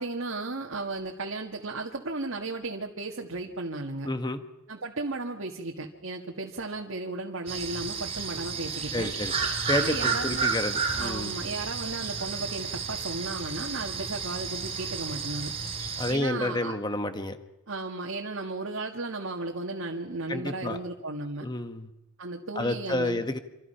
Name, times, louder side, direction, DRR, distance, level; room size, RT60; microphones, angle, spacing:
voice 1, 0.0-4.1 4.7-9.1 9.7-10.5 11.0-15.5 16.1-16.8 17.7-21.5 22.2-23.2, right 2 dB, 80° right, 0 dB, 1.9 m, -35 dB
voice 2, 4.0-4.4 8.9-9.3 9.7-11.3 16.0-17.4 20.3-20.8 21.4-21.9 22.5-23.4, left 1 dB, 20° left, 8 dB, 1.4 m, -30 dB
sound 1, 7.5-16.1, right 5 dB, 30° right, 3.7 m, -32 dB
26.5 x 26.0 x 5.7 m, 0.93 s
head